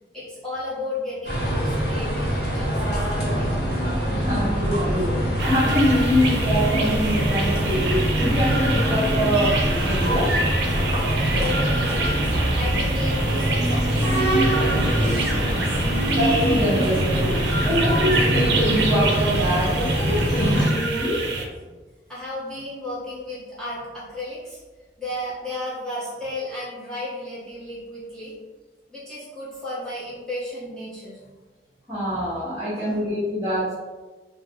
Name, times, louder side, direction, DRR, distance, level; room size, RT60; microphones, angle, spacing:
voice 1, 0.1-3.6 4.9-5.1 6.2-6.5 7.7-8.0 10.9-15.7 16.0-16.2 17.1-17.7 18.4-18.5 22.1-24.6 25.0-28.3 28.9-31.3 32.1-32.2 32.7-33.0, left 1 dB, 5° left, -10 dB, 1.0 m, -34 dB
sound 1, 1.2-20.7, equal, 65° left, 1.0 m, -23 dB
voice 2, 4.1-5.1 5.4-9.5 9.8-10.4 16.1-17.4 17.6-21.2 31.9-33.7, equal, 15° right, -13 dB, 1.2 m, -24 dB
sound 2, 5.4-21.4, right 3 dB, 70° right, 0.5 m, -28 dB
3.6 x 2.1 x 3.6 m, 1.3 s
head